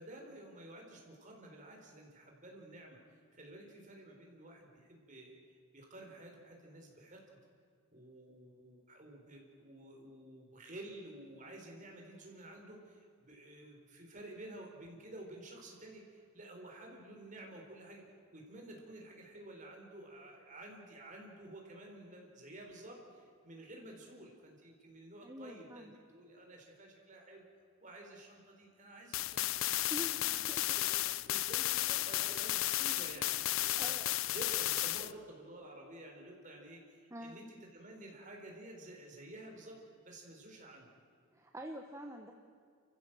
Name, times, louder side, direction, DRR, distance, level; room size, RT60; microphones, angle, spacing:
voice 1, 0.0-5.4 5.7-7.4 7.9-18.0 18.3-27.5 27.8-29.8 30.1-31.0 31.2-34.0 34.3-40.9, right 1 dB, 35° right, 1 dB, 4.3 m, -51 dB
voice 2, 25.2-25.9 29.9-30.8 33.6-34.0 37.1-37.4 41.3-42.3, right 1 dB, 15° right, 3 dB, 1.1 m, -46 dB
sound 1, 29.1-35.1, left 15 dB, 65° left, 0.5 m, -33 dB
29.0 x 15.0 x 7.7 m, 2.3 s
head